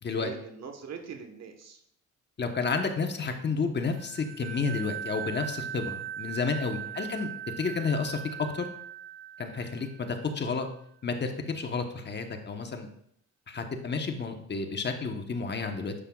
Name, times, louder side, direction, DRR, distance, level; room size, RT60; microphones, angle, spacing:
voice 1, 0.1-1.8 6.8-7.0 10.2-10.3, right 6 dB, 60° right, 5 dB, 1.3 m, -43 dB
voice 2, 2.4-7.3 7.6-8.7 9.4-10.7 11.0-12.9 13.5-15.9, left 4 dB, 35° left, 5 dB, 1.0 m, -31 dB
sound 1, 3.9-10.4, right 10 dB, 40° right, 0.5 m, -40 dB
9.8 x 7.4 x 2.4 m, 0.69 s
cardioid pair, 90°, 30 cm